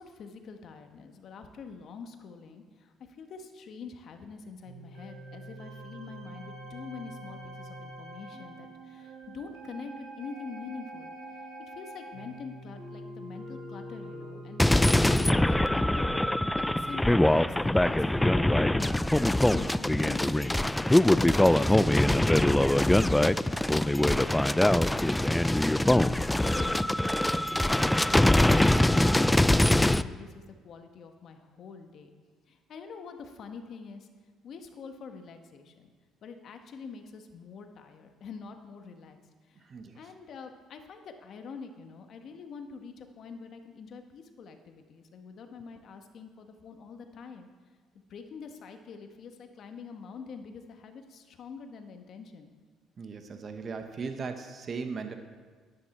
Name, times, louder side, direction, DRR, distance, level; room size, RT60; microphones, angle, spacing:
voice 1, 0.0-14.6 15.1-16.3 16.6-20.4 20.7-20.9 23.5-32.1 32.5-34.1 34.4-35.9 36.2-39.2 39.4-47.5 48.1-52.5, left 5 dB, 60° left, 6 dB, 1.2 m, -45 dB
sound 1, 4.6-20.4, right 1 dB, 90° right, 3.6 m, -45 dB
sound 2, 14.6-30.0, left 1 dB, 10° left, 0.3 m, -23 dB
voice 2, 39.5-40.0 53.0-55.1, right 5 dB, 45° right, 7 dB, 1.0 m, -38 dB
10.5 x 9.9 x 4.3 m, 1.5 s
supercardioid pair, 70°, 0 cm